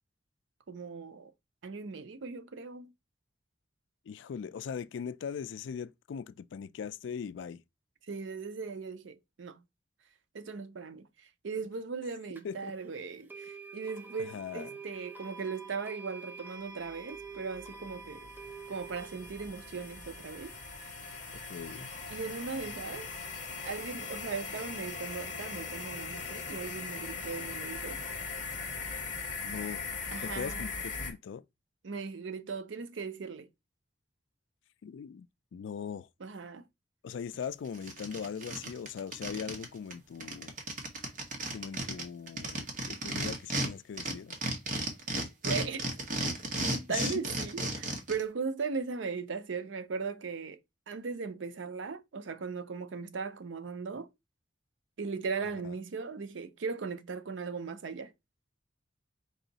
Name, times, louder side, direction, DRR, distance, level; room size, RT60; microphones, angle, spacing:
voice 1, 0.7-1.3 1.6-2.9 8.1-9.6 10.3-18.3 18.7-20.5 22.1-23.1 23.6-28.0 30.1-30.7 31.8-33.5 36.2-36.6 45.4-45.8 46.7-50.6 50.9-54.1 55.0-58.1, right 5 dB, 80° right, 0.5 m, -38 dB
voice 2, 4.1-7.6 12.4-12.7 14.2-14.7 21.5-21.9 29.4-29.8 30.2-31.4 34.8-35.3 35.5-36.1 37.0-40.5 41.5-44.4 46.9-47.3 55.6-55.7, left 7 dB, 75° left, 0.3 m, -40 dB
sound 1, 12.3-12.4 13.3-24.3, right 4 dB, 10° right, 0.5 m, -49 dB
sound 2, 17.3-31.1, left 4 dB, 40° left, 1.3 m, -40 dB
sound 3, 37.3-37.4 37.7-39.7 39.9-40.0 40.2-43.7 44.0-48.2, right 2 dB, 45° right, 1.1 m, -34 dB
4.8 x 2.6 x 3.9 m
head